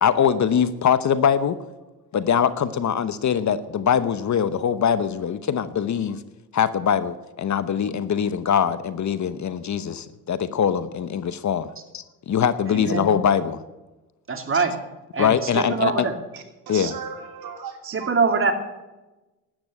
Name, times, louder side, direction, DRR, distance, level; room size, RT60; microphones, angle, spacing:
voice 1, 0.0-1.6 2.1-6.2 6.5-13.6 15.2-16.1 16.7-16.9, left 8 dB, 45° left, 14 dB, 0.9 m, -22 dB
voice 2, 12.7-13.1 14.3-14.7 15.1-16.1 17.9-18.5, right 5 dB, 30° right, 4 dB, 2.7 m, -23 dB
voice 3, 16.3-18.1, right 7 dB, 65° right, 3 dB, 2.9 m, -36 dB
12.5 x 8.8 x 8.6 m, 1.1 s
supercardioid pair, 75°, 40 cm